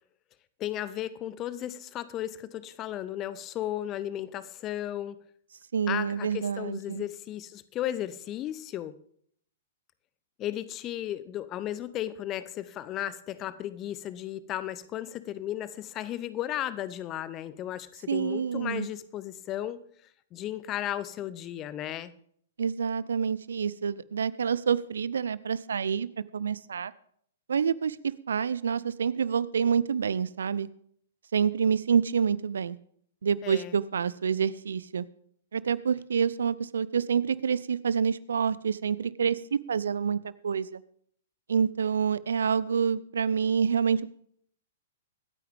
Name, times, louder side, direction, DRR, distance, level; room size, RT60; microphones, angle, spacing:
voice 1, 0.6-5.2 5.9-8.9 10.4-19.8 20.3-22.1 33.4-33.8, left 12 dB, 25° left, 16 dB, 0.7 m, -35 dB
voice 2, 5.7-7.0 18.1-18.9 22.6-26.1 26.3-26.9 27.5-28.0 28.3-30.7 31.3-32.8 33.2-35.1 35.5-40.8 41.5-44.1, right 6 dB, 65° right, 19 dB, 0.5 m, -27 dB
24.5 x 9.3 x 3.5 m, 0.64 s
figure-of-eight pair, 110°, 0 cm